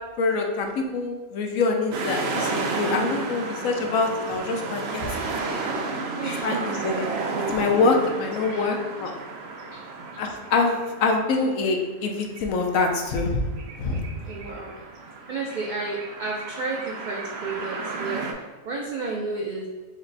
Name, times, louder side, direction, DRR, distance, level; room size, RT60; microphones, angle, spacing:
voice 1, 0.2-5.1 6.4-7.0 7.5-9.1 10.2-13.4 13.8-14.0, left 3 dB, 75° left, 3 dB, 1.0 m, -25 dB
sound 1, 1.9-18.3, right 3 dB, 65° right, 0.7 m, -32 dB
voice 2, 6.2-6.8 8.4-8.7 9.7-9.8 11.3-11.4 14.2-14.8 15.3-19.7, right 3 dB, 90° right, -2 dB, 0.4 m, -32 dB
5.1 x 2.1 x 4.0 m, 1.2 s
omnidirectional pair, 1.5 m